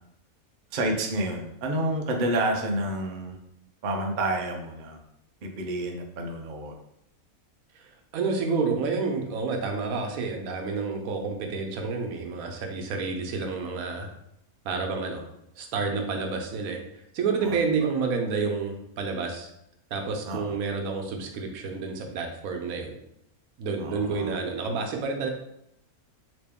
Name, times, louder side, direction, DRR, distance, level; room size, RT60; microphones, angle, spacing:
voice 1, 0.7-3.4 3.8-5.0 5.4-6.7 17.4-17.6 20.3-20.4 23.8-24.4, right 1 dB, 85° right, 2 dB, 0.4 m, -29 dB
voice 2, 7.8-14.1 14.6-15.2 15.6-16.8 17.1-19.5 19.9-23.0 23.6-25.3, right 4 dB, 70° right, 3 dB, 1.0 m, -29 dB
3.0 x 2.9 x 3.4 m, 0.78 s
omnidirectional pair, 1.6 m